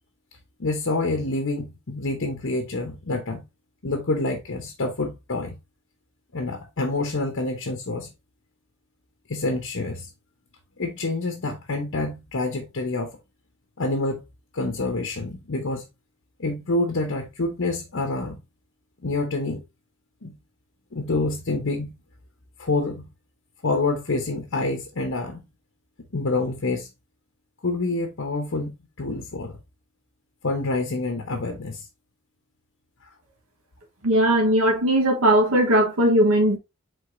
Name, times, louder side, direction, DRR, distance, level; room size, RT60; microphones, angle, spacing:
voice 1, 0.6-3.4 3.8-5.6 6.3-8.1 9.3-10.1 10.8-13.1 13.8-14.2 14.5-15.9 16.4-18.4 19.0-19.6 20.2-20.4 20.9-21.9 22.6-23.1 23.6-25.4 26.1-26.9 27.6-29.5 30.4-31.9, left 2 dB, 60° left, 0.9 m, -27 dB
voice 2, 34.0-36.6, right 1 dB, 80° right, 1.3 m, -19 dB
4.9 x 4.0 x 2.6 m
head